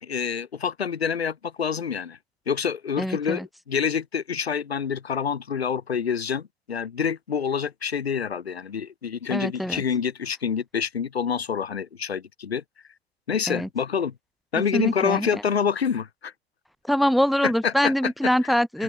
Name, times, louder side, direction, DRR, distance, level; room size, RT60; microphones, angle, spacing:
voice 1, 0.0-2.2 2.5-12.6 13.3-14.1 14.5-16.3 17.4-18.1 18.4-18.6, left 7 dB, 85° left, 3.6 m, -27 dB
voice 2, 3.0-3.5 9.3-9.8 13.5-13.7 14.7-15.4 16.8-18.8, equal, ahead, 1.5 m, -24 dB
open air
hypercardioid pair, 120°, 31 cm